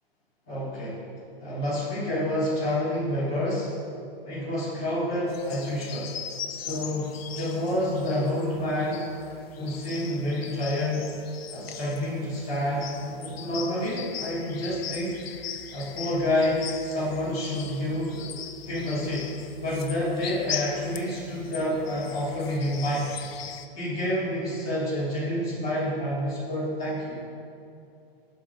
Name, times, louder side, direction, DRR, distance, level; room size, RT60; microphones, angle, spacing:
voice 1, 0.5-1.0 1.4-3.7 4.2-6.1 6.5-9.0 9.6-11.1 11.5-15.2 15.7-18.2 18.6-19.3 19.6-23.1 23.7-27.2, left 1 dB, 5° left, -13 dB, 0.3 m, -28 dB
sound 1, 5.3-23.7, left 8 dB, 80° left, 0.6 m, -40 dB
11.0 x 3.8 x 4.8 m, 2.5 s
hypercardioid pair, 175°, 30 cm